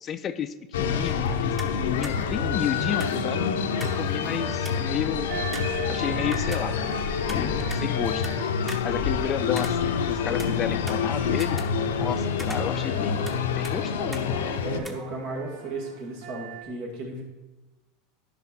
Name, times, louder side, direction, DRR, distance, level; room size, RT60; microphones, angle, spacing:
voice 1, 0.0-5.3 5.9-7.0 7.3-8.3 8.8-11.6 12.0-14.6, left 8 dB, 35° left, 12 dB, 0.4 m, -32 dB
sound 1, 0.7-14.8, left 6 dB, 85° left, 0.7 m, -27 dB
sound 2, 1.6-1.8 2.0-2.2 3.0-4.1 4.3-4.4 4.7-4.9 5.5-7.0 7.3-8.4 8.7-10.1 10.4-12.1 12.4-13.4 13.6-13.8 14.1-14.3 14.8-14.9, right 1 dB, 10° right, 1.0 m, -41 dB
sound 3, 2.0-16.6, right 4 dB, 85° right, 1.6 m, -43 dB
voice 2, 11.8-12.2 14.6-17.2, right 2 dB, 65° right, 0 dB, 2.4 m, -35 dB
11.0 x 5.3 x 4.4 m, 1.1 s
supercardioid pair, 115°, 0 cm